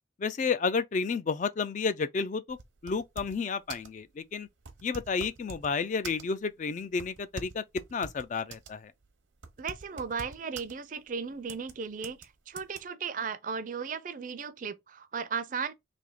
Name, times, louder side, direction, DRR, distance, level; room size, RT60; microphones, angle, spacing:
voice 1, 0.2-2.6 2.8-4.5 4.8-7.6 7.9-8.9, left 5 dB, 40° left, 0.3 m, -31 dB
sound 1, 2.5-3.4 3.7-4.0 4.6-5.7 6.0-6.5 7.0-8.7 9.0-9.1 9.4-10.7 11.5-11.7 12.0-12.3 12.6-12.8, right 4 dB, 80° right, 0.8 m, -44 dB
voice 2, 9.6-15.7, right 6 dB, 45° right, 0.4 m, -36 dB
3.4 x 2.7 x 3.8 m
head